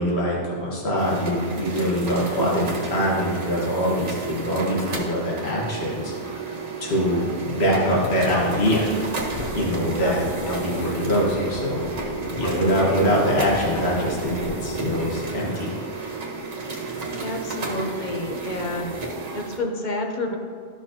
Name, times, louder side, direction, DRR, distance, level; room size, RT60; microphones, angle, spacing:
voice 1, 0.0-6.1 6.4-6.5 6.8-9.0 9.5-11.9 12.4-15.8, equal, 60° left, -4 dB, 1.7 m, -24 dB
sound 1, 1.0-19.6, right 4 dB, 75° right, 1.6 m, -32 dB
Fixed-wing aircraft airplane, 7.5-15.3, left 2 dB, 80° left, 1.7 m, -34 dB
voice 2, 17.1-19.0 19.3-20.4, left 2 dB, 45° left, 2 dB, 0.9 m, -29 dB
13.5 x 5.7 x 2.9 m, 2.2 s
omnidirectional pair, 1.2 m